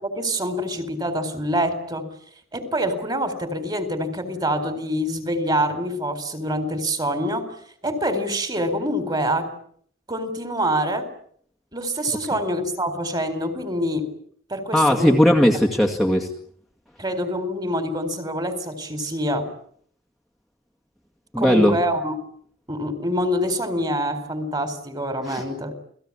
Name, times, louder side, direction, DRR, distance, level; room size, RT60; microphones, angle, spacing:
voice 1, 0.0-2.1 2.5-7.4 7.8-9.5 10.1-11.1 11.7-14.1 14.5-15.2 17.0-19.5 21.4-22.2 22.7-25.7, equal, 25° right, 10 dB, 4.3 m, -25 dB
voice 2, 14.7-16.3 21.3-21.8 25.3-25.4, equal, ahead, -1 dB, 2.1 m, -18 dB
29.5 x 19.5 x 8.7 m, 0.63 s
head